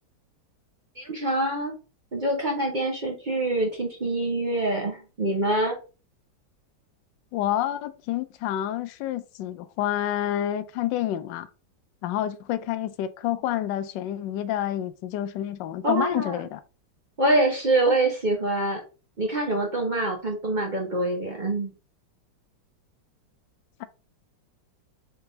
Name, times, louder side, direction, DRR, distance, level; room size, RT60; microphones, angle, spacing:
voice 1, 1.0-1.7 2.1-5.8 15.8-16.4 17.2-18.8 19.2-21.7, right 2 dB, 55° right, 0.5 m, -25 dB
voice 2, 7.3-11.5 12.0-16.6 17.9-18.0, left 12 dB, 75° left, 1.2 m, -28 dB
3.9 x 3.4 x 3.8 m
omnidirectional pair, 2.1 m